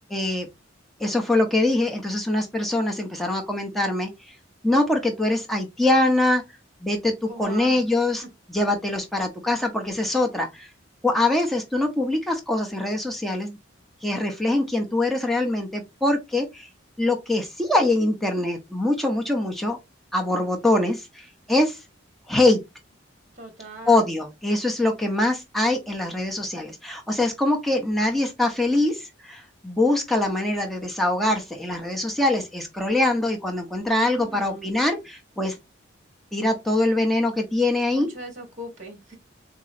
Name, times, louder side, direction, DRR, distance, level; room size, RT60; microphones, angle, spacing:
voice 1, 0.1-0.5 1.0-4.3 4.6-6.4 6.8-10.7 11.0-13.6 14.0-16.7 17.0-19.8 20.1-21.8 22.3-22.6 23.8-35.6 36.3-38.1, left 2 dB, ahead, 0.6 m, -23 dB
voice 2, 7.3-7.8 23.4-24.0 34.0-34.7 37.9-39.2, right 1 dB, 35° right, 1.2 m, -39 dB
3.8 x 3.0 x 2.4 m
head